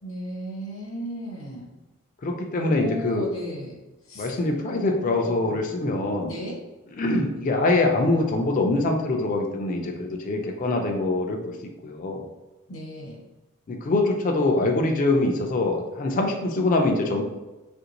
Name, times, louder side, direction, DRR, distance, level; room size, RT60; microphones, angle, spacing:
voice 1, 0.0-1.7 2.6-3.8 4.1-4.3 4.7-5.6 6.3-6.6 12.7-13.2, equal, 70° left, -4 dB, 1.0 m, -36 dB
voice 2, 2.2-3.3 4.2-6.3 7.0-11.4 11.8-12.2 13.7-17.2, left 2 dB, 40° left, 2 dB, 0.4 m, -24 dB
3.4 x 2.5 x 2.9 m, 1.1 s
head